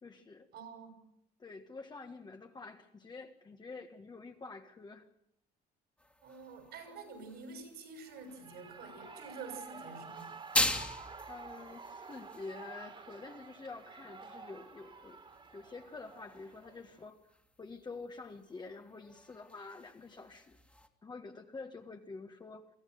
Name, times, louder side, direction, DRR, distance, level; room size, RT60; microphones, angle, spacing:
voice 1, 0.0-0.5 1.4-5.1 11.3-15.2 15.5-17.2 17.6-20.6 21.0-22.7, left 3 dB, 25° left, 4 dB, 1.6 m, -48 dB
voice 2, 0.5-1.0 6.2-10.4, right 4 dB, 70° right, 7 dB, 6.5 m, -48 dB
sound 1, 6.0-20.9, left 1 dB, 5° left, 2.2 m, -42 dB
Shout / Cheering, 8.1-17.1, right 4 dB, 30° right, 2.8 m, -50 dB
23.0 x 14.5 x 9.4 m, 0.75 s
cardioid pair, 110°, 17 cm